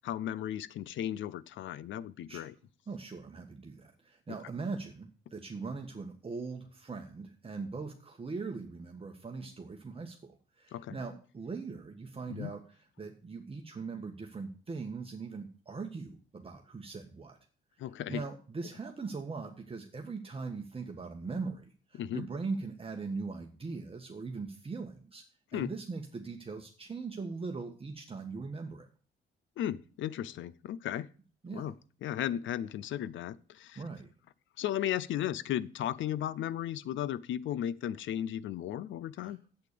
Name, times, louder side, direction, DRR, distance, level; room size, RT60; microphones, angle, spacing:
voice 1, 0.0-2.5 10.7-11.0 12.3-12.5 17.8-18.2 21.9-22.2 25.5-25.7 29.6-31.1 31.5-31.7 32.0-33.8 34.6-39.4, left 11 dB, 75° left, 19 dB, 0.7 m, -35 dB
voice 2, 2.9-12.6 13.0-17.4 18.1-25.2 25.5-28.9 31.4-31.7 33.7-34.1 39.2-39.4, right 4 dB, 30° right, 3 dB, 1.5 m, -40 dB
8.3 x 8.2 x 6.8 m, 0.40 s
cardioid pair, 90°, 20 cm